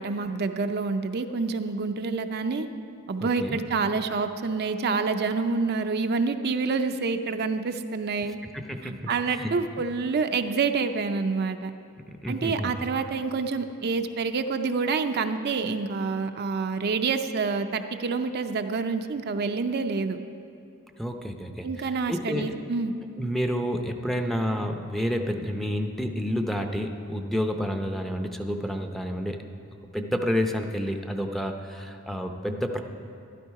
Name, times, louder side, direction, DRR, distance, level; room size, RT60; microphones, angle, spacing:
voice 1, 0.0-2.7 3.1-8.4 8.8-11.7 12.3-20.2 21.6-22.9, right 4 dB, 50° right, 7 dB, 0.5 m, -27 dB
voice 2, 3.2-3.6 8.7-9.6 12.1-12.7 21.0-22.5 23.2-29.4 29.9-32.8, equal, ahead, 4 dB, 0.6 m, -29 dB
12.5 x 11.5 x 4.7 m, 2.6 s
head